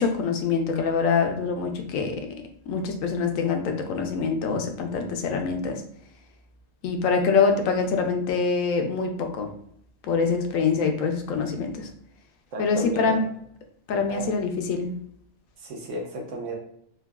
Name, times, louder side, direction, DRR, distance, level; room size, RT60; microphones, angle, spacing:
voice 1, 0.0-2.4 2.7-5.8 6.8-9.5 10.0-11.9 12.6-13.2 13.9-14.9, left 5 dB, 80° left, 4 dB, 1.0 m, -25 dB
voice 2, 12.5-13.2 14.1-14.4 15.6-16.5, right 1 dB, 70° right, 0 dB, 1.1 m, -33 dB
3.8 x 2.2 x 2.2 m, 0.67 s
omnidirectional pair, 1.4 m